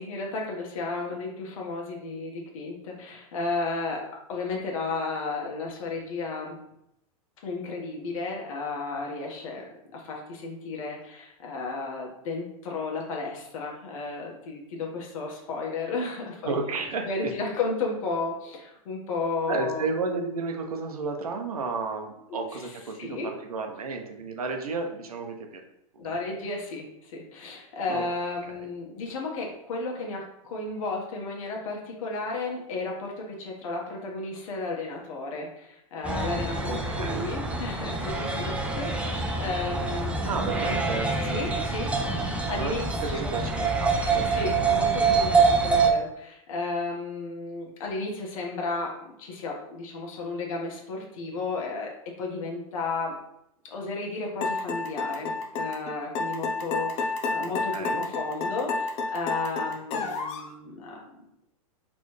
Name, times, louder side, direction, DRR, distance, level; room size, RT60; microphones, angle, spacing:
voice 1, 0.0-6.6 7.4-9.6 9.9-16.5 17.0-19.9 22.3-22.4 23.0-23.3 26.0-40.2 41.2-43.3 44.3-53.1 53.7-61.3, left 3 dB, 65° left, -1 dB, 1.4 m, -33 dB
voice 2, 16.4-17.3 19.5-25.6 26.1-26.2 27.9-28.0 36.7-37.3 40.2-41.1 42.6-42.7 43.1-44.3 57.4-58.0, right 4 dB, 90° right, 4 dB, 0.8 m, -32 dB
sound 1, 36.0-45.9, right 4 dB, 5° right, 0.5 m, -26 dB
sound 2, 54.4-60.5, left 3 dB, 35° left, 0.8 m, -29 dB
4.2 x 3.3 x 3.2 m, 0.80 s
hypercardioid pair, 115°, 18 cm